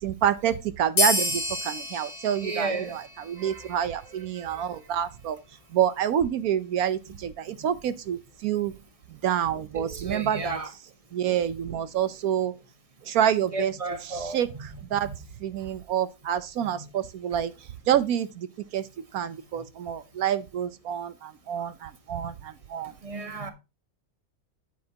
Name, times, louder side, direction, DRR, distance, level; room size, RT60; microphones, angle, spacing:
voice 1, 0.0-5.4 5.7-8.7 9.1-10.6 11.1-12.5 13.0-13.7 14.1-15.1 15.4-17.5 17.9-18.5 18.7-22.9, right 9 dB, 80° right, 1.2 m, -27 dB
sound 1, 1.0-4.0, left 2 dB, 85° left, 2.7 m, -30 dB
voice 2, 2.4-3.0 3.4-3.9 4.4-4.6 9.7-10.7 13.5-14.7 14.9-15.2 16.6-16.9 23.0-23.5, right 3 dB, 25° right, 1.5 m, -34 dB
9.5 x 8.8 x 2.8 m
omnidirectional pair, 1.5 m